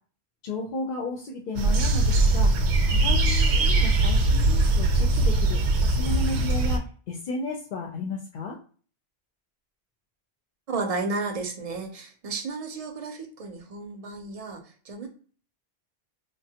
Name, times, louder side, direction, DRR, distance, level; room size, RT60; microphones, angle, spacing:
voice 1, 0.4-2.5 2.9-6.8 7.1-8.6, left 2 dB, 60° left, 1 dB, 0.6 m, -34 dB
sound 1, 1.6-6.8, right 2 dB, 80° right, 0.8 m, -21 dB
voice 2, 10.7-15.1, right 3 dB, 45° right, 4 dB, 0.5 m, -33 dB
3.2 x 2.1 x 2.7 m, 0.41 s
omnidirectional pair, 1.1 m